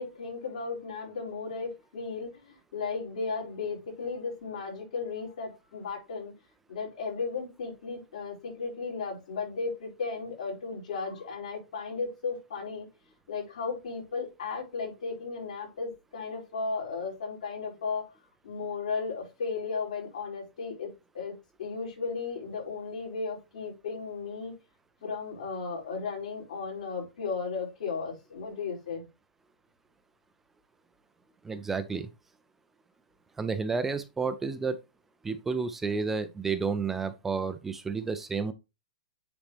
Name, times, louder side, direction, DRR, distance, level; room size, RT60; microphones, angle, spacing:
voice 1, 0.0-6.3 6.7-12.9 13.3-18.1 18.4-24.5 25.0-29.0, left 4 dB, 65° left, 4.9 m, -35 dB
voice 2, 31.4-32.1 33.4-34.8 35.2-38.5, right 5 dB, 5° right, 0.3 m, -31 dB
9.0 x 4.1 x 3.3 m
hypercardioid pair, 170°, 4 cm